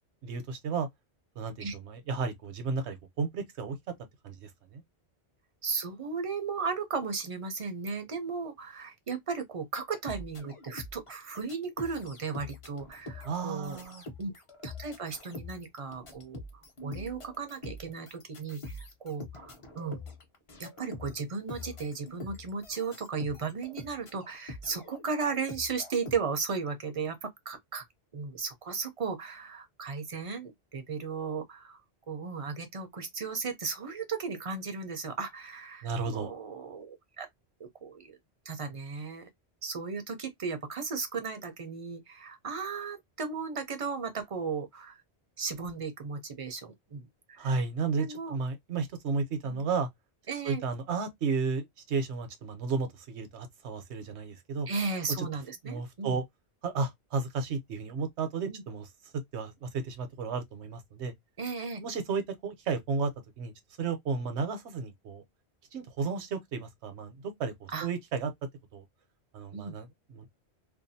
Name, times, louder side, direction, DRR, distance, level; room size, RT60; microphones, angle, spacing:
voice 1, 0.2-0.9 1.4-3.8 4.2-4.8 13.2-14.0 35.8-36.3 47.4-49.9 50.4-54.7 55.2-55.3 55.6-56.2 56.6-58.9 59.3-61.1 61.8-63.1 63.4-63.5 63.8-65.2 65.7-68.3 68.7-68.8 69.3-70.3, right 4 dB, 80° right, 1.0 m, -33 dB
voice 2, 5.6-14.3 14.6-16.4 16.8-20.0 20.6-27.8 28.1-31.8 32.1-37.3 37.6-38.2 38.4-39.3 39.6-45.0 45.4-47.5 48.0-48.4 49.4-49.6 50.3-50.6 54.7-56.2 58.5-58.6 61.4-61.8 67.7-67.9 69.5-69.8, right 5 dB, 40° right, 0.5 m, -36 dB
sound 1, 9.9-26.2, left 2 dB, 35° left, 0.6 m, -45 dB
2.6 x 2.3 x 2.6 m
omnidirectional pair, 1.1 m